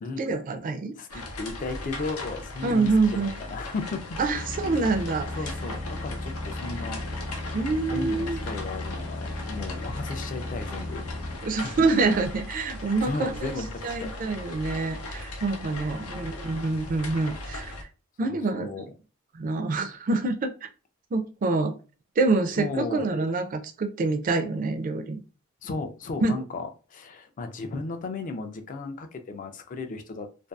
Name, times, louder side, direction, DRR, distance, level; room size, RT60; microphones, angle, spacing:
voice 1, 0.2-0.9 2.6-3.3 4.2-5.3 7.5-8.4 11.4-13.6 13.8-17.7 18.2-18.9 19.3-20.5 21.1-21.7 22.2-25.2 26.2-26.4, right 3 dB, 40° right, 7 dB, 0.3 m, -26 dB
voice 2, 0.9-4.0 4.6-4.7 5.4-7.0 7.8-11.0 11.4-11.9 13.0-14.1 15.6-16.3 18.2-18.9 22.6-23.1 25.6-30.5, left 3 dB, 40° left, 7 dB, 0.3 m, -35 dB
sound 1, 1.1-17.8, left 2 dB, 85° left, 0.6 m, -38 dB
sound 2, 4.3-11.4, left 2 dB, 60° left, 0.8 m, -36 dB
2.5 x 2.3 x 2.2 m, 0.34 s
head